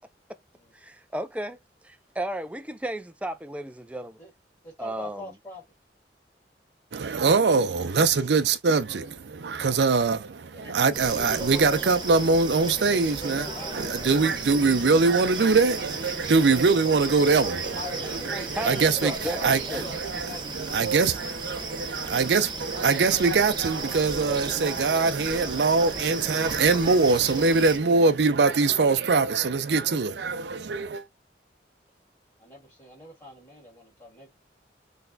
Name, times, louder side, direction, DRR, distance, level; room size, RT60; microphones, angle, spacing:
voice 1, 0.7-1.6 1.8-4.2 4.8-5.3 18.5-19.9, right 1 dB, 10° right, 0.4 m, -34 dB
voice 2, 4.6-5.6 9.5-9.8 10.5-10.9 12.5-14.0 17.7-20.9 32.4-34.3, left 1 dB, 20° left, 2.2 m, -43 dB
voice 3, 6.9-31.1, right 4 dB, 70° right, 0.5 m, -23 dB
sound 1, 10.9-27.8, right 3 dB, 25° right, 1.0 m, -35 dB
4.0 x 3.4 x 2.7 m
head